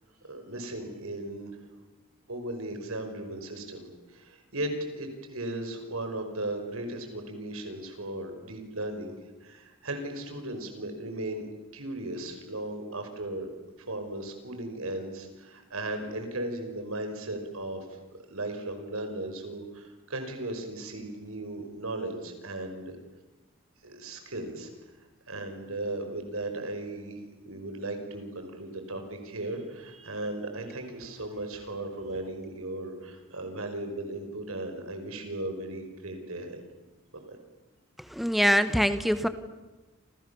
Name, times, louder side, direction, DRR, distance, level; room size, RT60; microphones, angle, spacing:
voice 1, 0.2-1.7 2.3-11.5 11.7-13.5 13.9-23.0 23.8-24.7 25.0-36.6 37.1-37.4, right 1 dB, 90° right, 6 dB, 5.6 m, -36 dB
voice 2, 38.0-39.3, equal, ahead, 10 dB, 1.3 m, -24 dB
28.5 x 28.0 x 7.2 m, 1.1 s
head